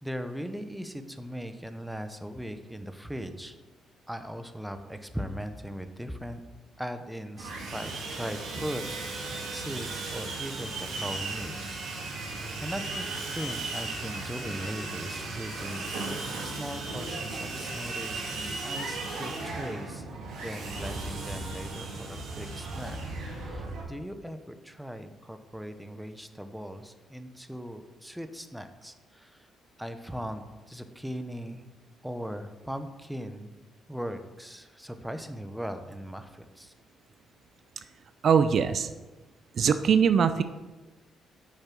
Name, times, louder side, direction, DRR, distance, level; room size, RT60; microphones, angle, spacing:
voice 1, 0.0-3.5 4.1-6.4 6.8-12.3 12.6-20.0 20.4-23.0 23.4-29.5 29.8-31.7 32.0-33.6 33.9-36.7, equal, 5° right, 8 dB, 0.9 m, -39 dB
Sawing, 7.4-23.8, right 3 dB, 85° right, 2.8 m, -36 dB
voice 2, 38.2-38.9 39.6-40.4, right 7 dB, 55° right, 11 dB, 0.5 m, -22 dB
8.5 x 6.5 x 6.0 m, 1.2 s
cardioid pair, 90°, 0 cm